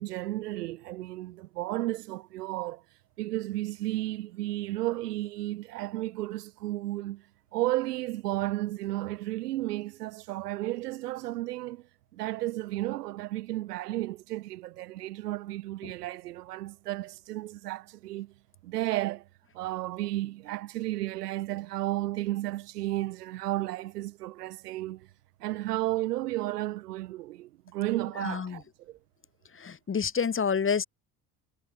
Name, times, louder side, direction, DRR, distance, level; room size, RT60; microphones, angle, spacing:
voice 1, 0.0-2.8 3.2-7.3 7.5-11.9 12.1-18.3 18.6-19.3 19.5-25.1 25.4-29.0, right 16 dB, 85° right, 1.3 m, -33 dB
voice 2, 28.2-28.6 29.6-30.9, left 6 dB, 25° left, 1.4 m, -28 dB
hypercardioid pair, 60°, 46 cm